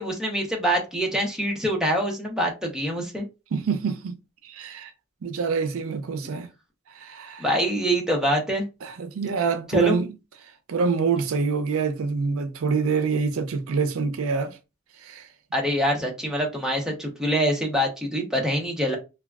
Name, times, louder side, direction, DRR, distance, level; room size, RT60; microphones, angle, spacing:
voice 1, 0.0-3.3 7.4-8.6 9.7-10.0 15.5-19.0, equal, 5° right, 0.7 m, -25 dB
voice 2, 3.5-4.1 4.4-4.9 5.2-6.5 6.9-7.5 8.8-10.1 10.4-14.6 15.0-15.3, right 5 dB, 80° right, 0.5 m, -26 dB
3.4 x 2.2 x 2.3 m
head